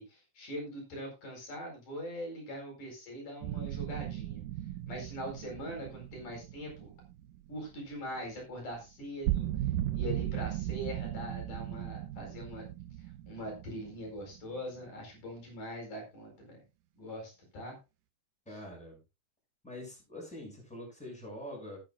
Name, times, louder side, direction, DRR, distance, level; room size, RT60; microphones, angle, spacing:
voice 1, 0.0-4.4 4.9-6.9 7.5-9.5 9.9-12.7 13.3-16.6 17.0-17.8, equal, 75° left, 1 dB, 6.0 m, -42 dB
sound 1, 3.4-8.3 8.6-8.7 9.0-14.5, right 13 dB, 90° right, 2.3 m, -37 dB
voice 2, 18.5-19.0 19.6-21.8, left 1 dB, ahead, -1 dB, 6.2 m, -44 dB
18.0 x 9.2 x 2.4 m, 0.27 s
omnidirectional pair, 3.6 m